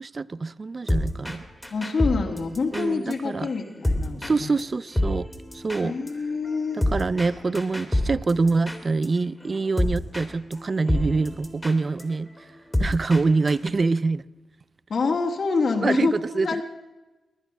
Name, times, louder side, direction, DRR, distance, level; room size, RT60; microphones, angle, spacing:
voice 1, 0.0-1.5 2.7-3.5 4.2-5.3 5.5-5.9 6.9-12.3 12.8-14.3 15.8-16.6, right 3 dB, 40° right, 20 dB, 0.4 m, -25 dB
sound 1, 0.9-1.4 1.6-4.3 4.6-4.7 4.9-9.1 9.4-10.3 10.5-10.6 10.9-13.2 13.5-13.7, left 1 dB, 10° left, 2.2 m, -27 dB
voice 2, 1.7-4.6 5.8-6.8 14.9-16.6, left 4 dB, 60° left, 4 dB, 1.8 m, -26 dB
19.5 x 10.5 x 6.0 m, 1.1 s
cardioid pair, 90°, 0 cm